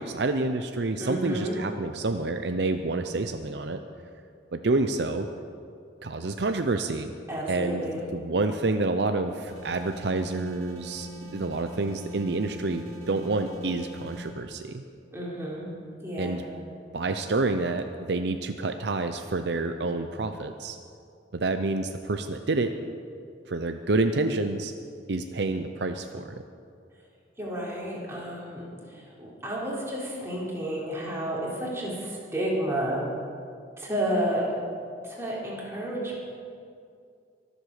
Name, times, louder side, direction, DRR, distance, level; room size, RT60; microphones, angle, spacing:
voice 1, 0.0-3.8 4.5-5.3 6.0-7.1 7.5-7.8 8.1-14.8 16.2-16.4 16.9-20.8 21.3-22.7 23.5-24.7 25.1-26.4, right 3 dB, 65° right, 7 dB, 0.6 m, -28 dB
voice 2, 1.0-1.6 7.3-8.0 15.1-15.7 16.0-16.5 27.4-33.0 33.8-34.5 35.0-36.2, right 1 dB, 15° right, -5 dB, 3.6 m, -31 dB
sound 1, 9.5-14.3, right 1 dB, 40° right, 3.4 m, -42 dB
23.5 x 8.0 x 6.5 m, 2.4 s
head